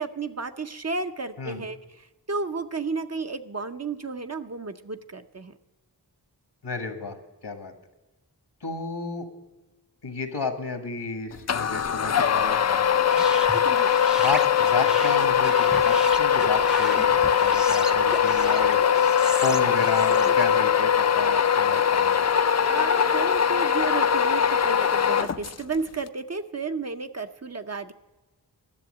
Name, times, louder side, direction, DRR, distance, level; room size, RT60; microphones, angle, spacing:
voice 1, 0.0-5.6 13.6-13.9 22.7-27.9, right 4 dB, 40° right, 8 dB, 0.6 m, -32 dB
voice 2, 6.6-7.2 7.4-7.7 8.6-9.3 10.0-13.3 14.2-18.8 19.4-22.3, left 4 dB, 80° left, 5 dB, 1.6 m, -32 dB
sound 1, 11.5-25.8, left 8 dB, 40° left, 0.4 m, -21 dB
sound 2, 13.1-20.6, equal, ahead, 0.6 m, -36 dB
11.0 x 7.0 x 9.4 m, 1.1 s
wide cardioid pair, 60°, 41 cm